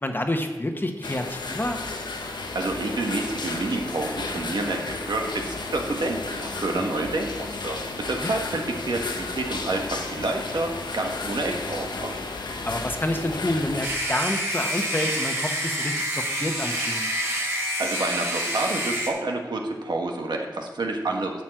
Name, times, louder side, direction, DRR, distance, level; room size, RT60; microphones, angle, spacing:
voice 1, 0.0-1.8 8.2-8.3 12.6-17.2, left 1 dB, 30° left, 5 dB, 1.2 m, -28 dB
sound 1, 1.0-13.9, left 3 dB, 85° left, 0.9 m, -33 dB
voice 2, 2.5-7.8 8.1-12.1 17.8-21.4, right 2 dB, 80° right, 2 dB, 1.4 m, -28 dB
sound 2, 13.8-19.1, equal, 35° right, 3.4 m, -27 dB
8.9 x 5.5 x 7.6 m, 1.2 s
wide cardioid pair, 55°, 7 cm